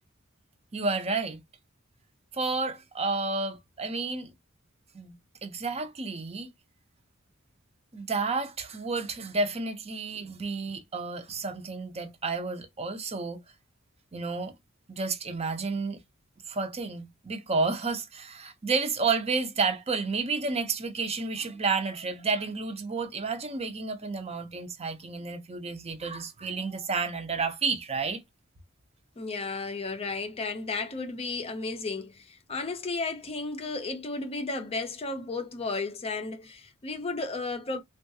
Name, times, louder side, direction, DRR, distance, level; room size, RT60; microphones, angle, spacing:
voice 1, 0.7-1.4 2.3-4.3 4.9-5.1 5.4-6.5 7.9-13.4 14.1-14.5 14.9-16.0 16.5-28.2, right 4 dB, 30° right, 0.6 m, -31 dB
voice 2, 29.2-37.8, left 3 dB, 30° left, 0.5 m, -33 dB
3.6 x 2.3 x 2.6 m
head